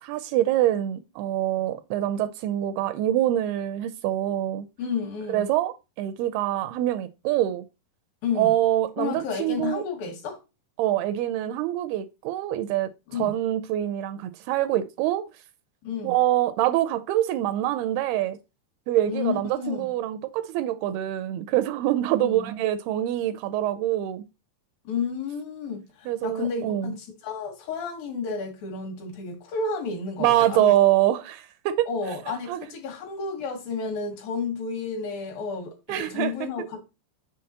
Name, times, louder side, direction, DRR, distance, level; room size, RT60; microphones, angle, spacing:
voice 1, 0.0-4.7 5.3-7.6 8.4-9.8 10.8-12.9 13.2-15.3 16.0-18.4 18.9-24.2 26.1-27.0 30.2-32.2 32.5-32.6 35.9-36.3, right 13 dB, 85° right, 2.4 m, -25 dB
voice 2, 4.8-5.5 8.2-8.5 9.0-10.4 13.1-13.3 15.8-16.1 19.1-19.9 22.2-22.5 24.8-30.7 31.9-36.8, left 5 dB, 65° left, 2.8 m, -31 dB
6.5 x 5.2 x 2.8 m
omnidirectional pair, 4.6 m